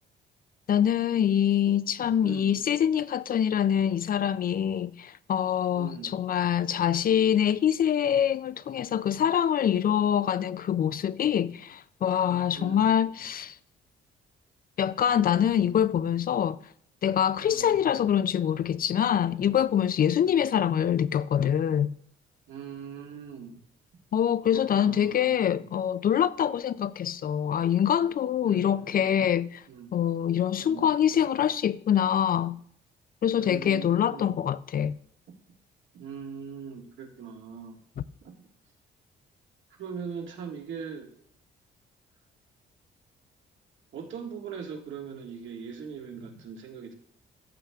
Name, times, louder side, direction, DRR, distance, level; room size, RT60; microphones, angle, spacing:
voice 1, 0.7-13.5 14.8-16.6 17.0-21.9 24.1-29.6 29.9-32.6 33.2-34.9, left 9 dB, 45° left, 0.4 m, -25 dB
voice 2, 2.2-2.6 5.7-6.1 12.5-12.9 17.5-17.8 20.1-20.6 22.5-23.6 24.5-25.6 28.4-29.0 29.7-29.9 30.6-30.9 33.4-34.4 35.9-37.8 38.2-38.5 39.8-41.1 43.9-46.9, right 6 dB, 75° right, 1.9 m, -41 dB
14.0 x 6.2 x 3.5 m
cardioid pair, 90°, 20 cm